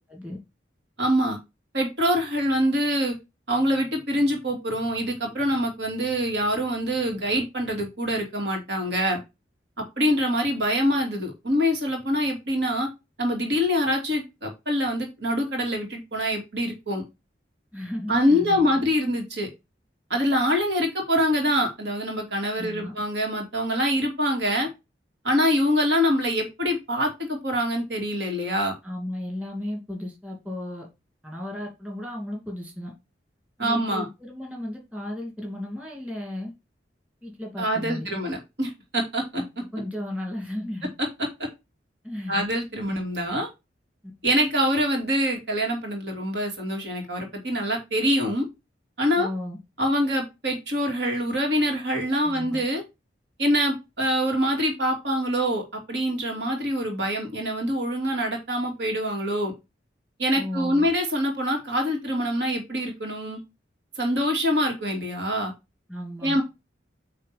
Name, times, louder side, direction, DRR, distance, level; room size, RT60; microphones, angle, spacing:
voice 1, 1.0-1.4 1.7-3.1 3.5-9.2 10.0-12.9 13.2-17.0 18.1-19.5 20.1-24.7 25.2-28.7 33.6-34.1 37.6-39.4 42.3-43.5 44.2-48.4 49.0-49.3 49.8-52.8 53.4-59.5 60.2-63.4 64.0-65.5 66.2-66.4, equal, 70° right, 2.9 m, -25 dB
voice 2, 17.7-18.8 22.6-22.9 28.8-30.9 31.2-32.9 33.6-36.5 37.2-38.2 39.4-39.5 39.7-40.9 42.0-42.5 42.9-43.0 49.2-49.6 52.2-52.6 60.3-60.9 65.9-66.4, left 1 dB, 10° right, 2.6 m, -34 dB
9.1 x 3.8 x 4.3 m
head